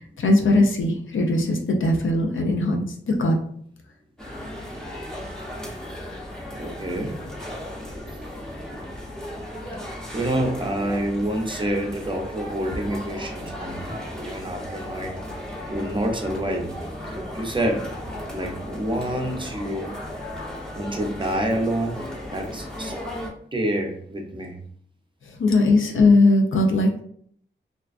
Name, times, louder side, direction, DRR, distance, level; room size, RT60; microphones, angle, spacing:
voice 1, 0.0-3.3 25.4-27.0, left 2 dB, 80° left, 3 dB, 0.5 m, -19 dB
sound 1, 4.2-23.3, left 1 dB, 5° left, 0.8 m, -35 dB
voice 2, 6.5-7.2 8.1-8.2 10.1-15.2 15.7-16.7 17.0-18.0 18.3-20.0 20.8-23.0 23.5-24.6 25.7-25.8, right 1 dB, 25° right, 2 dB, 0.5 m, -28 dB
2.4 x 2.2 x 2.4 m, 0.62 s
wide cardioid pair, 65°, 20 cm